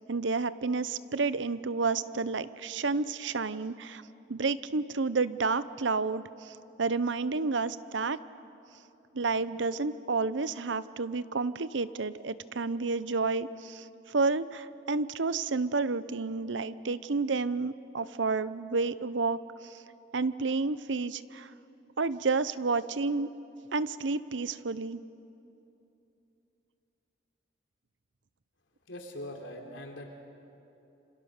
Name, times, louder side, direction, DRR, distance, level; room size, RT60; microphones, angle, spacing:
voice 1, 0.1-4.0 4.3-6.2 6.8-8.2 9.1-19.4 20.1-21.5 22.0-23.3 23.7-25.0, right 4 dB, 80° right, 15 dB, 0.8 m, -30 dB
voice 2, 28.9-30.1, left 1 dB, 85° left, 2 dB, 3.5 m, -41 dB
27.5 x 26.0 x 6.6 m, 2.8 s
head